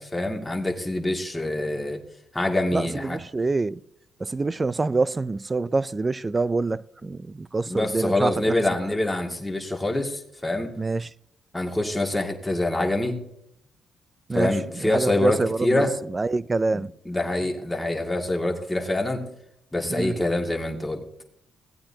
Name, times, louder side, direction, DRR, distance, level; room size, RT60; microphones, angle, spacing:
voice 1, 0.0-2.0 2.3-3.2 7.7-10.7 11.5-13.2 14.3-15.9 16.7-19.2 19.7-21.0, left 2 dB, 10° left, 2.1 m, -25 dB
voice 2, 2.7-3.8 4.2-8.6 10.8-11.1 14.3-16.9 19.9-20.2, right 3 dB, 25° right, 0.4 m, -26 dB
18.0 x 8.7 x 2.8 m
cardioid pair, 90°, 0 cm